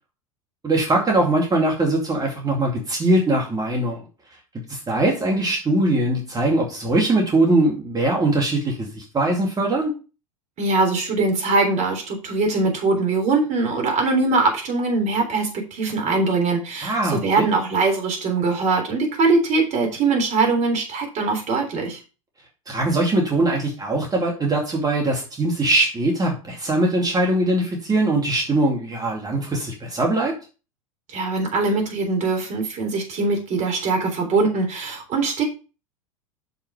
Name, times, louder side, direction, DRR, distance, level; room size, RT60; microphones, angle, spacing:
voice 1, 0.6-4.0 4.7-9.9 16.8-17.5 22.7-30.3, right 2 dB, 20° right, 0 dB, 2.4 m, -21 dB
voice 2, 10.6-22.0 31.1-35.4, right 3 dB, 40° right, 3 dB, 3.4 m, -22 dB
6.8 x 5.8 x 4.9 m, 0.33 s
hypercardioid pair, 90°, 18 cm